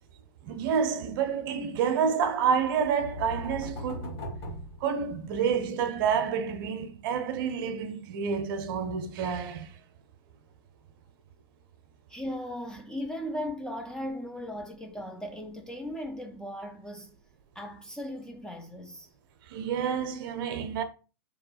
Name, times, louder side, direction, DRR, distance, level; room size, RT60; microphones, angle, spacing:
voice 1, 0.4-4.2 4.8-9.7 19.5-20.8, right 7 dB, 55° right, 0.6 m, -29 dB
sound 1, 2.6-5.5, left 1 dB, 45° left, 1.8 m, -39 dB
voice 2, 12.1-17.2 17.6-19.1, left 1 dB, 5° left, 0.3 m, -37 dB
2.9 x 2.2 x 3.9 m
hypercardioid pair, 110°, 14 cm